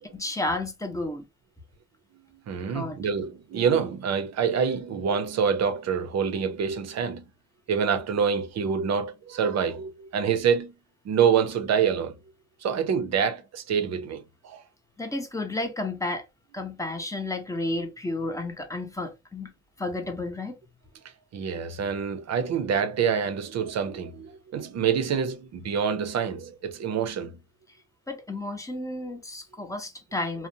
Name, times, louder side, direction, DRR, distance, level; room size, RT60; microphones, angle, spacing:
voice 1, 0.1-1.3 2.6-3.0 15.0-16.2 16.5-19.5 19.8-20.6 28.1-30.5, left 2 dB, 10° left, 0.8 m, -32 dB
voice 2, 2.5-7.2 7.7-10.7 11.0-12.2 12.6-14.6 21.3-27.4, right 7 dB, 60° right, 0.6 m, -26 dB
2.6 x 2.1 x 2.6 m
cardioid pair, 90°, 30 cm